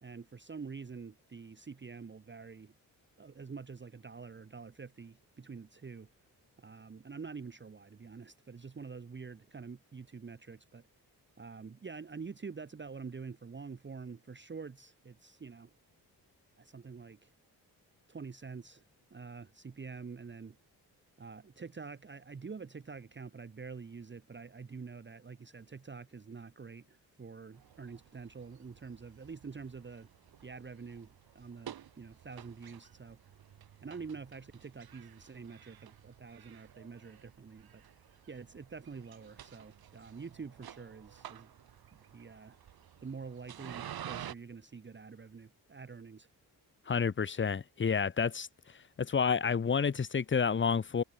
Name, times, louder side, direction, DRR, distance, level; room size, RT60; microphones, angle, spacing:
voice 1, 0.0-2.7 3.2-6.1 6.6-10.8 11.4-15.7 16.6-17.3 18.1-18.8 19.1-20.6 21.2-30.1 30.4-33.2 33.8-37.8 38.3-41.5 41.9-42.6 43.0-46.3, right 5 dB, 25° right, 1.0 m, -47 dB
sound 1, 27.5-44.3, right 10 dB, 60° right, 1.2 m, -51 dB
voice 2, 46.9-48.5 49.0-51.0, left 6 dB, 30° left, 0.8 m, -29 dB
supercardioid pair, 45°, 41 cm